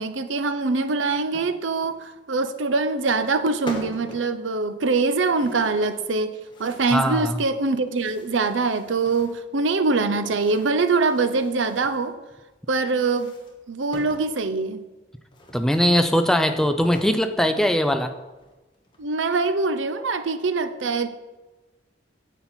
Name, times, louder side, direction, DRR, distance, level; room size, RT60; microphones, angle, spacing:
voice 1, 0.0-12.1 12.7-13.3 13.7-14.8 19.0-21.1, right 3 dB, 85° right, 10 dB, 0.7 m, -23 dB
sound 1, 1.1-2.0 2.9-3.4 3.7-4.3 5.3-6.1 6.5-7.3 7.8-9.5 10.1-12.1 12.9-14.3 15.3-17.2 17.8-17.9 18.3-19.2, left 1 dB, 25° left, 1.2 m, -43 dB
voice 2, 6.9-7.4 15.5-18.1, equal, 5° left, 7 dB, 0.5 m, -20 dB
9.6 x 7.2 x 4.4 m, 1.1 s
head